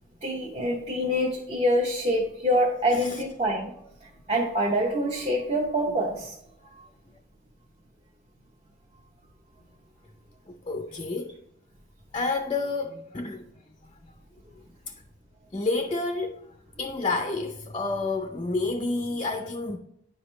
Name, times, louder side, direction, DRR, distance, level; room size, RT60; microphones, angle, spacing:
voice 1, 0.2-3.7 4.3-6.3, equal, 30° right, 0.8 m, -25 dB
voice 2, 10.5-11.4 12.1-13.6 14.0-14.2 15.5-19.8, left 3 dB, 25° left, 0.5 m, -30 dB
9.7 x 5.0 x 3.1 m
head